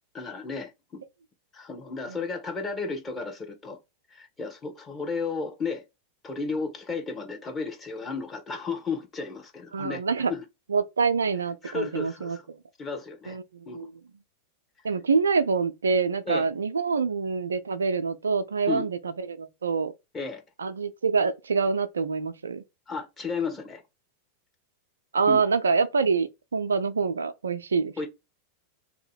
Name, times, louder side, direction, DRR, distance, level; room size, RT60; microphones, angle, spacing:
voice 1, 0.1-1.0 1.5-3.8 4.1-5.8 6.2-10.0 10.3-10.4 11.6-12.4 12.8-13.4 13.7-13.9 16.3-16.5 18.7-18.9 20.1-20.4 22.9-23.8 25.3-25.4 28.0-28.1, left 4 dB, 20° left, 1.1 m, -33 dB
voice 2, 9.7-10.3 10.7-12.4 13.3-13.9 14.8-19.9 20.6-22.6 25.1-28.1, right 5 dB, 70° right, 0.4 m, -26 dB
2.8 x 2.7 x 4.2 m
figure-of-eight pair, 90°, 0 cm